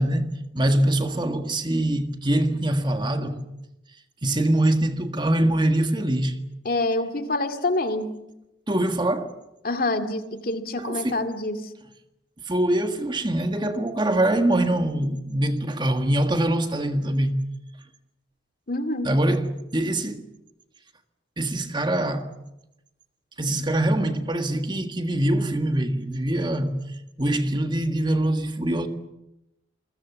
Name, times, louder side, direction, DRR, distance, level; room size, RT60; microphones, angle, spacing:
voice 1, 0.0-3.4 4.2-6.3 8.7-9.3 10.8-11.2 12.5-17.4 19.0-20.2 21.4-22.3 23.4-26.8 27.2-28.9, right 1 dB, 25° right, 1.5 m, -23 dB
voice 2, 6.6-8.1 9.6-11.7 18.7-19.1, left 2 dB, 50° left, 2.2 m, -26 dB
28.0 x 22.0 x 7.2 m
head